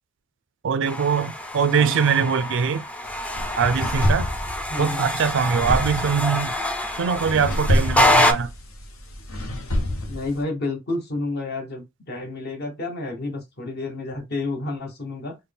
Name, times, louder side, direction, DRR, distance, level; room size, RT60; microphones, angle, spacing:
voice 1, 0.6-2.8 3.6-4.3 4.8-6.5 7.0-8.5, right 6 dB, 60° right, 0.4 m, -22 dB
sound 1, 0.9-8.3, left 1 dB, 5° left, 0.4 m, -25 dB
voice 2, 1.7-2.0 4.7-5.1 10.1-15.4, left 2 dB, 50° left, 1.1 m, -30 dB
sound 2, 3.0-10.4, equal, 85° left, 0.8 m, -28 dB
4.2 x 2.2 x 3.4 m
head